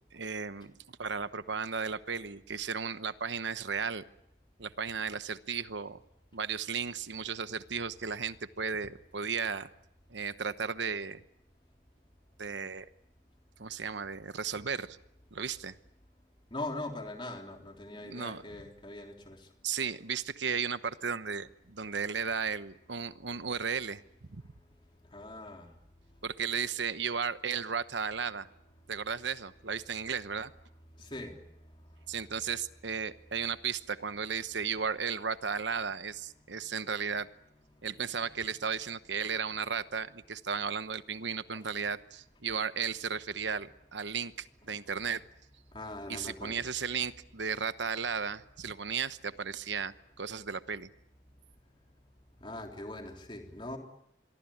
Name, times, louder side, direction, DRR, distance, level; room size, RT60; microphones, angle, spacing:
voice 1, 0.1-4.0 4.6-6.0 6.3-9.7 10.1-11.2 12.4-12.9 13.6-15.0 15.3-15.8 18.0-18.6 19.6-24.4 26.2-28.5 28.9-30.5 32.1-37.3 37.8-45.2 46.1-50.9, right 6 dB, 80° right, 12 dB, 1.0 m, -35 dB
voice 2, 16.5-19.5 25.1-25.7 31.0-31.4 32.1-32.3 36.5-36.8 37.4-38.8 39.1-39.3 45.7-46.7 52.4-53.8, left 2 dB, 25° left, 3 dB, 3.4 m, -42 dB
26.0 x 23.0 x 8.7 m, 0.77 s
head